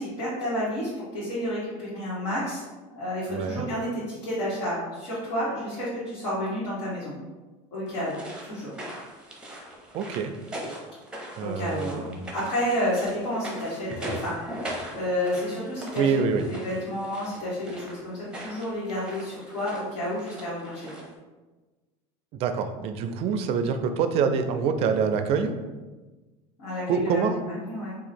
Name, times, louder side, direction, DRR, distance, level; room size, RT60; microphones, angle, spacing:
voice 1, 0.0-2.6 2.9-7.1 7.7-8.1 8.4-8.7 11.4-12.0 12.3-14.5 14.9-16.1 16.5-20.9 26.6-28.0, left 1 dB, 85° left, -10 dB, 1.5 m, -30 dB
voice 2, 3.3-3.6 9.9-10.3 11.4-12.2 16.0-16.4 22.3-25.5 26.9-27.4, right 6 dB, 45° right, 7 dB, 0.4 m, -25 dB
sound 1, 7.9-21.1, right 1 dB, 5° right, 0.6 m, -40 dB
2.9 x 2.4 x 4.2 m, 1.2 s
cardioid pair, 140°, 14 cm